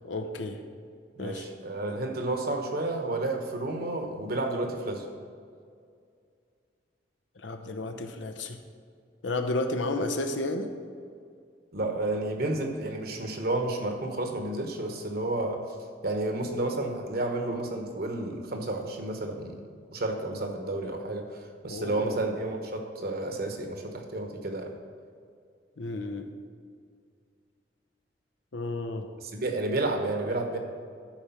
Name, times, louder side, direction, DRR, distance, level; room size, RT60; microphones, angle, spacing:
voice 1, 0.0-0.6 1.2-1.5 7.4-8.6 9.2-10.7 21.7-22.2 25.8-26.3 28.5-29.1, left 2 dB, 90° left, 7 dB, 0.8 m, -32 dB
voice 2, 1.2-5.0 11.7-15.6 16.0-19.6 19.9-24.7 29.2-30.6, right 2 dB, 55° right, 4 dB, 1.2 m, -31 dB
12.0 x 4.8 x 5.8 m, 2.2 s
head